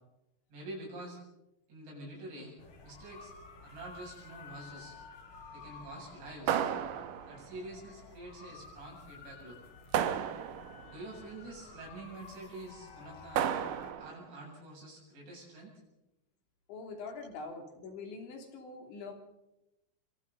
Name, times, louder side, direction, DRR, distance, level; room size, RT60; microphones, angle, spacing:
voice 1, 0.5-1.2 1.7-2.5 2.8-3.3 3.6-5.0 5.5-6.6 7.3-9.6 10.8-13.5 14.0-15.7 17.1-17.2, right 2 dB, 85° right, -4 dB, 9.9 m, -47 dB
sound 1, 2.6-13.9, left 4 dB, 50° left, 4.3 m, -52 dB
sound 2, 6.5-7.5 9.9-10.9 13.4-14.2, right 9 dB, 70° right, 2.1 m, -32 dB
voice 2, 16.7-19.1, left 4 dB, 90° left, 3 dB, 5.3 m, -44 dB
28.0 x 24.5 x 4.1 m, 0.92 s
omnidirectional pair, 5.1 m